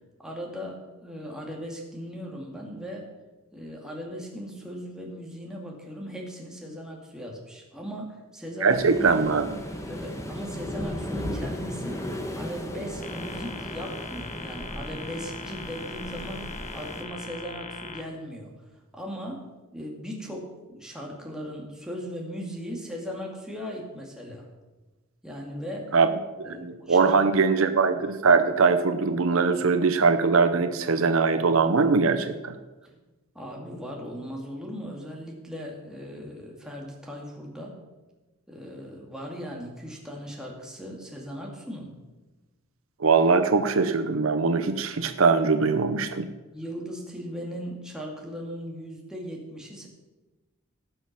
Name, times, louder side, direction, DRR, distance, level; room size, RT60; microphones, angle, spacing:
voice 1, 0.2-3.1 3.5-9.1 9.9-16.5 16.7-18.5 18.9-19.5 19.7-24.5 25.2-25.9 26.4-27.1 33.3-37.8 38.5-41.9 46.5-49.9, equal, 5° right, -1 dB, 2.3 m, -38 dB
voice 2, 8.6-9.5 25.9-26.1 26.4-32.6 43.0-46.3, right 4 dB, 65° right, 9 dB, 0.7 m, -21 dB
Waves surf, 8.7-17.0, equal, 15° left, 1.2 m, -36 dB
sound 1, 13.0-18.0, left 4 dB, 35° left, 1.0 m, -40 dB
17.5 x 6.3 x 6.0 m, 1.2 s
head